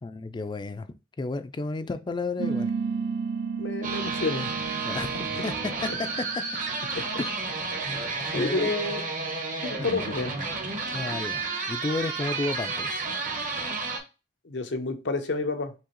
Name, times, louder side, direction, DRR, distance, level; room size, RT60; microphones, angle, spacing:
voice 1, 0.0-0.9 1.2-2.7 4.8-6.1 7.2-7.3 8.3-8.7 9.8-9.9 10.9-13.0, left 3 dB, 25° left, 0.3 m, -32 dB
sound 1, 2.4-7.3, right 5 dB, 85° right, 0.3 m, -33 dB
voice 2, 3.6-4.5 6.9-7.2 8.3-9.1 9.6-10.4 14.4-15.7, left 3 dB, 90° left, 0.7 m, -29 dB
sound 2, 3.8-14.0, right 4 dB, 50° right, 0.9 m, -31 dB
4.6 x 2.8 x 3.0 m
head